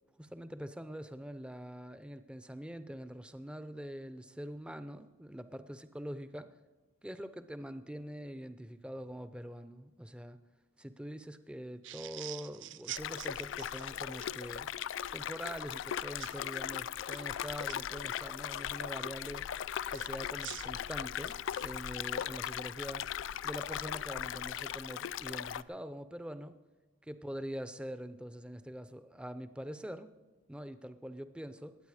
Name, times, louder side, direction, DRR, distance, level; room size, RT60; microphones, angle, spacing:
voice 1, 0.2-6.5 7.0-10.4 10.8-14.7 15.1-19.4 19.9-23.1 23.4-26.5 27.0-30.1 30.5-31.8, equal, 5° right, 11 dB, 0.5 m, -44 dB
sound 1, 11.8-14.3 16.2-16.4 17.0-17.8 19.9-21.8, right 14 dB, 70° right, 0.4 m, -46 dB
sound 2, 12.9-25.6, left 9 dB, 75° left, 0.3 m, -38 dB
21.0 x 8.8 x 4.9 m, 1.2 s
head